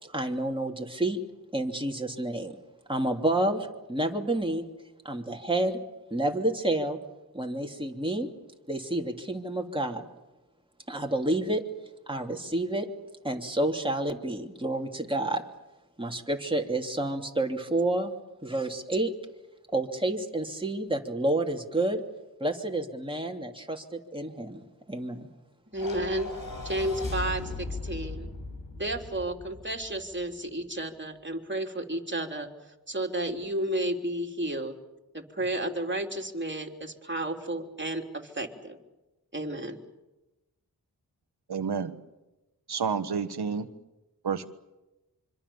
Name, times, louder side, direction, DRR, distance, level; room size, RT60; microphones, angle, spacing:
voice 1, 0.0-1.2 1.5-2.6 2.9-4.6 5.0-5.8 6.1-7.0 7.3-8.3 8.7-10.1 10.9-11.6 12.1-12.9 13.2-15.5 16.0-18.1 18.4-19.1 19.7-22.0 22.4-24.6 24.9-25.3, right 1 dB, 15° right, 2 dB, 3.1 m, -29 dB
voice 2, 25.7-26.3 26.6-28.3 28.7-34.8 35.1-38.8 39.3-39.8, right 1 dB, 30° right, 3 dB, 3.6 m, -32 dB
sound 1, 25.8-30.2, left 3 dB, 60° left, 4.6 m, -37 dB
voice 3, 41.5-42.0 42.7-43.7 44.2-44.5, right 6 dB, 85° right, 11 dB, 1.4 m, -29 dB
25.5 x 25.0 x 7.2 m, 1.0 s
cardioid pair, 40°, 38 cm